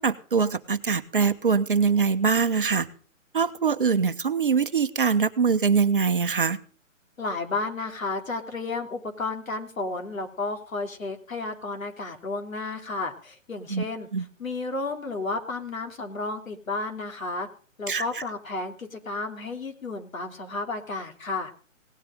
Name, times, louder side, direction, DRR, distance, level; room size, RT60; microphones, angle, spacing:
voice 1, 0.0-2.9 3.3-6.6 13.7-13.8 14.1-14.2 17.9-18.2, right 5 dB, 40° right, 10 dB, 0.9 m, -23 dB
voice 2, 7.2-14.1 14.4-17.5 17.8-21.5, left 3 dB, 85° left, 4 dB, 3.4 m, -32 dB
18.0 x 10.0 x 5.2 m, 0.42 s
hypercardioid pair, 180°, 40 cm